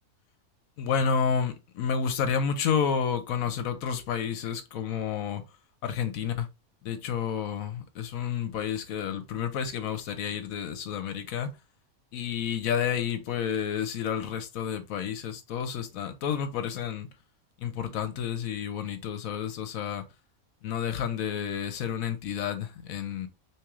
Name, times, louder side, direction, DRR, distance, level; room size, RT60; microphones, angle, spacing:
voice 1, 0.8-5.4 5.8-6.5 6.8-11.5 12.1-17.1 17.6-20.0 20.6-23.3, left 7 dB, 75° left, 1.0 m, -30 dB
3.5 x 2.9 x 3.0 m
omnidirectional pair, 1.6 m